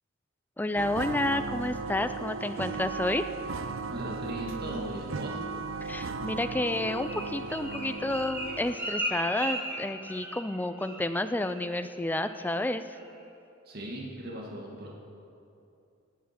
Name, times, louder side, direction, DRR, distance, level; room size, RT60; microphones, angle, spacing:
voice 1, 0.6-3.2 5.8-12.8, left 1 dB, 10° left, 10 dB, 0.4 m, -30 dB
sound 1, 0.7-8.8, right 4 dB, 70° right, 0.6 m, -36 dB
voice 2, 3.9-5.4 13.7-14.9, right 1 dB, 50° right, -2 dB, 1.9 m, -38 dB
Bird, 6.5-10.5 10.8-11.2 11.4-11.8 12.1-12.5 12.9-13.0, right 1 dB, 10° right, 3.1 m, -36 dB
16.5 x 8.7 x 5.9 m, 2.7 s
head